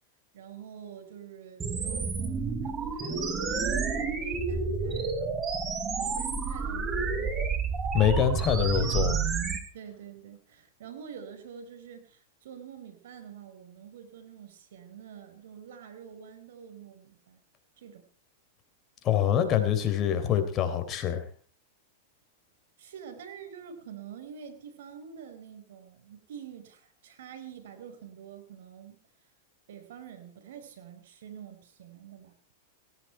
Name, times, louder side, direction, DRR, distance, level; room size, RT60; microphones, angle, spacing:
voice 1, 0.3-5.3 6.0-7.5 8.4-9.3 9.7-17.4 17.8-18.1 22.8-29.0 29.7-32.3, right 8 dB, 75° right, 8 dB, 5.0 m, -46 dB
sound 1, 1.6-9.6, right 5 dB, 25° right, 4.7 m, -30 dB
voice 2, 7.9-9.1 19.0-21.2, left 9 dB, 35° left, 8 dB, 3.7 m, -25 dB
18.0 x 16.5 x 4.7 m, 0.43 s
hypercardioid pair, 115°, 0 cm